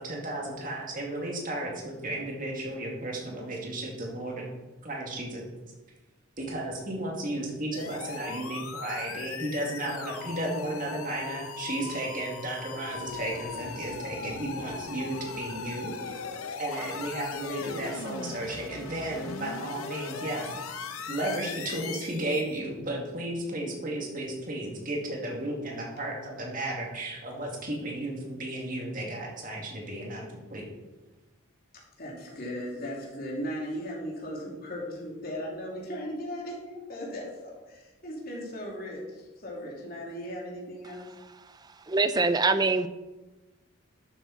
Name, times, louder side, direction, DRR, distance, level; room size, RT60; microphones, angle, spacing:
voice 1, 0.0-4.5 4.8-5.4 6.4-15.9 16.6-20.6 21.1-30.7, right 1 dB, 40° right, -1 dB, 2.3 m, -34 dB
sound 1, 7.7-22.6, left 5 dB, 85° left, 0.8 m, -39 dB
voice 2, 31.7-41.1, equal, 45° left, -2 dB, 2.8 m, -37 dB
voice 3, 41.9-42.9, right 3 dB, 20° right, 11 dB, 0.4 m, -23 dB
12.0 x 7.3 x 4.2 m, 1.1 s
head